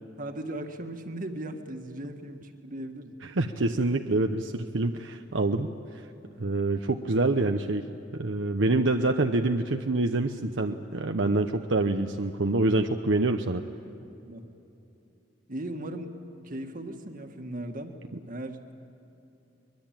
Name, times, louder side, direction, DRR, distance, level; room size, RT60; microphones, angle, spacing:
voice 1, 0.2-3.1 14.3-14.5 15.5-16.1 16.4-18.0 18.3-18.7, right 1 dB, 45° right, 5 dB, 1.9 m, -37 dB
voice 2, 3.2-5.7 6.4-7.8 8.1-13.6, right 2 dB, 70° right, 5 dB, 0.9 m, -26 dB
24.0 x 22.0 x 9.1 m, 2.9 s
head